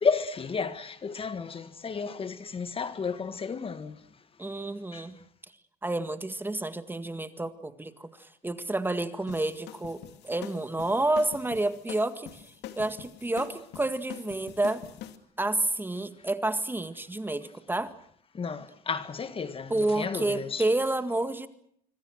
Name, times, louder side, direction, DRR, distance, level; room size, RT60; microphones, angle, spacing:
voice 1, 0.0-4.0 4.9-5.0 18.3-20.6, left 5 dB, 35° left, 1.8 m, -32 dB
voice 2, 4.4-5.2 5.8-10.0 10.2-12.4 12.8-14.8 15.4-17.9 19.7-21.5, right 2 dB, 10° right, 1.9 m, -29 dB
sound 1, 9.3-15.2, left 11 dB, 80° left, 2.6 m, -44 dB
25.5 x 25.0 x 6.5 m
cardioid pair, 110°, 17 cm